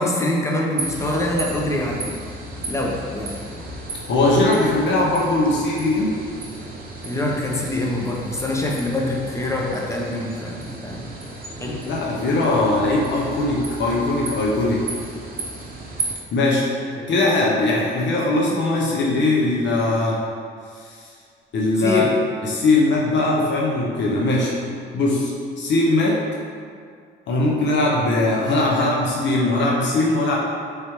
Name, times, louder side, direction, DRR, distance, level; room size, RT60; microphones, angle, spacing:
voice 1, 0.0-2.1 2.7-3.3 7.0-11.1 11.6-11.8 17.0-17.1 21.8-22.2, left 1 dB, 15° left, -2 dB, 0.7 m, -24 dB
sound 1, 0.8-16.1, right 2 dB, 45° right, 0.7 m, -34 dB
voice 2, 4.1-6.2 11.9-14.9 16.3-16.7 17.1-20.2 20.8-20.9 21.5-22.1 22.4-24.5 24.9-26.2 27.3-30.4, left 2 dB, 65° left, -3 dB, 0.7 m, -20 dB
4.5 x 3.3 x 3.0 m, 2.2 s
cardioid pair, 90°, 20 cm